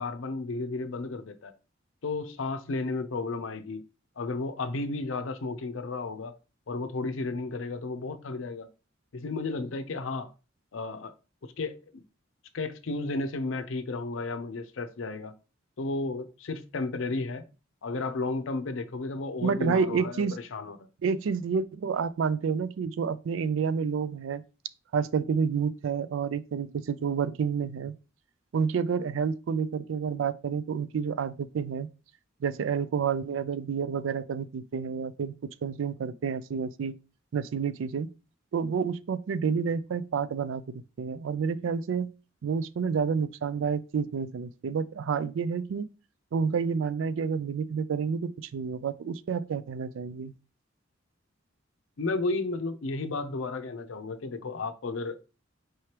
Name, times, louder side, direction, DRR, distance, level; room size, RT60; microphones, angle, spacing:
voice 1, 0.0-1.5 2.0-3.8 4.2-6.3 6.7-8.7 9.1-10.3 10.7-11.1 11.4-12.0 12.5-15.4 15.8-17.4 17.8-20.9 52.0-55.2, left 3 dB, 75° left, 0.5 m, -33 dB
voice 2, 19.4-20.4 21.0-24.4 24.9-28.0 28.5-31.9 32.4-37.0 37.3-38.1 38.5-42.1 42.4-45.9 46.3-50.3, right 6 dB, 75° right, 0.3 m, -29 dB
4.7 x 3.2 x 2.9 m
head